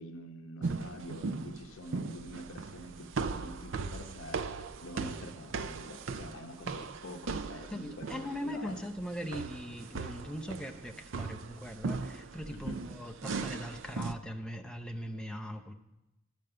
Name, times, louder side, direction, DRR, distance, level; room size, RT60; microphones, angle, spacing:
voice 1, 0.0-8.7 12.5-12.8, left 1 dB, 65° left, 5 dB, 0.8 m, -46 dB
sound 1, 0.6-14.1, right 4 dB, 60° right, 0.5 m, -39 dB
voice 2, 7.7-15.7, equal, 5° left, 3 dB, 0.6 m, -40 dB
12.0 x 5.3 x 7.7 m, 0.95 s
head